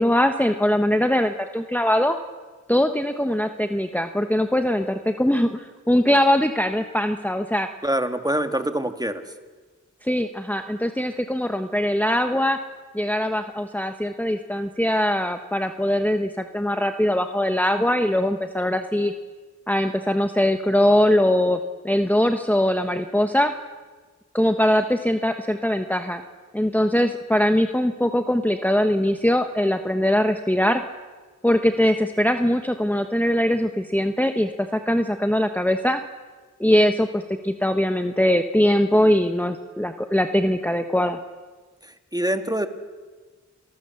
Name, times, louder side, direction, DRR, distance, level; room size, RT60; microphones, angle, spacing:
voice 1, 0.0-2.2 2.7-7.7 10.0-12.6 12.9-19.1 19.7-23.5 24.3-26.2 26.5-30.8 31.4-36.0 36.6-41.2, left 1 dB, 5° left, 6 dB, 1.1 m, -21 dB
voice 2, 7.8-9.2 42.1-42.7, right 1 dB, 10° right, 8 dB, 1.8 m, -24 dB
28.0 x 19.0 x 7.1 m, 1.4 s
wide cardioid pair, 45°, 30 cm